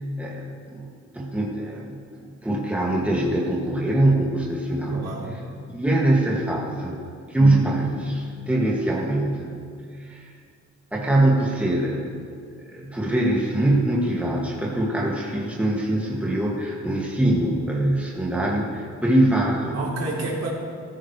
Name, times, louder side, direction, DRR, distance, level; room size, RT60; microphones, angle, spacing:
voice 1, 0.2-5.4 5.7-7.0 7.3-9.5 10.0-10.3 10.9-12.1 12.6-19.9, right 1 dB, 5° right, -4 dB, 2.4 m, -23 dB
voice 2, 4.9-5.4 7.4-7.7 19.7-20.5, right 2 dB, 55° right, -4 dB, 3.9 m, -29 dB
16.0 x 14.5 x 3.4 m, 2.3 s
cardioid pair, 90°, 30 cm